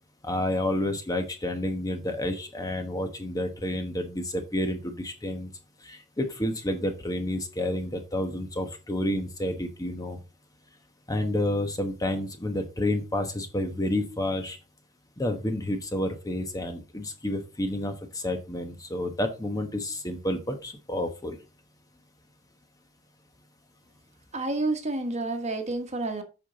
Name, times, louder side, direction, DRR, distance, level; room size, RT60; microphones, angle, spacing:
voice 1, 0.2-5.5 5.8-10.2 11.1-14.6 15.2-21.4, left 1 dB, 15° left, 1.1 m, -30 dB
voice 2, 24.3-26.2, right 2 dB, 35° right, 1.3 m, -29 dB
8.2 x 5.6 x 3.9 m
head